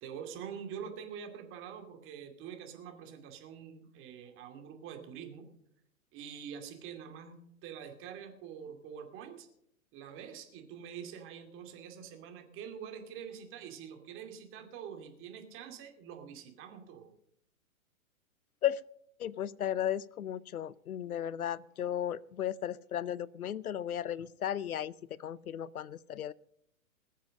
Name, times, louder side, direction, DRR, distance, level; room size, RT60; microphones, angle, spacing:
voice 1, 0.0-5.5 6.1-9.5 9.9-17.1, right 8 dB, 30° right, 4 dB, 2.4 m, -45 dB
voice 2, 19.2-26.3, left 10 dB, 85° left, 23 dB, 0.6 m, -35 dB
20.5 x 7.4 x 6.5 m, 0.74 s
hypercardioid pair, 120°, 42 cm